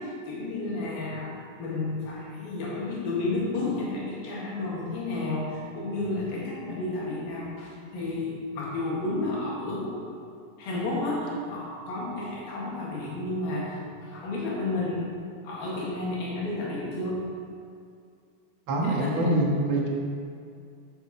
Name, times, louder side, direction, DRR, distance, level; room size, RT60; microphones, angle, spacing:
voice 1, 0.0-10.0 10.6-15.1 15.4-17.2 18.8-19.3, left 2 dB, 90° left, -5 dB, 3.8 m, -31 dB
voice 2, 18.7-19.9, right 1 dB, 50° right, -2 dB, 1.7 m, -24 dB
13.0 x 7.0 x 4.5 m, 2.4 s
omnidirectional pair, 4.1 m